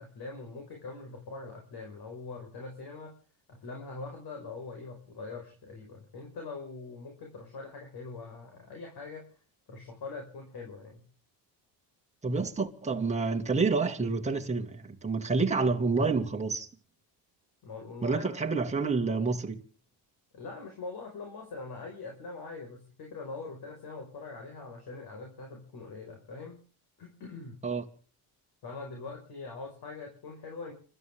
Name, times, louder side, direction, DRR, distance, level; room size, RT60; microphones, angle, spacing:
voice 1, 0.0-3.1 3.5-9.2 9.7-11.0 17.6-18.5 20.3-26.6 27.0-27.6 28.6-30.7, left 3 dB, 55° left, 5.4 m, -43 dB
voice 2, 12.2-16.7 18.0-19.6 27.6-27.8, right 4 dB, 15° right, 2.2 m, -28 dB
29.5 x 13.5 x 3.7 m
cardioid pair, 125°, 46 cm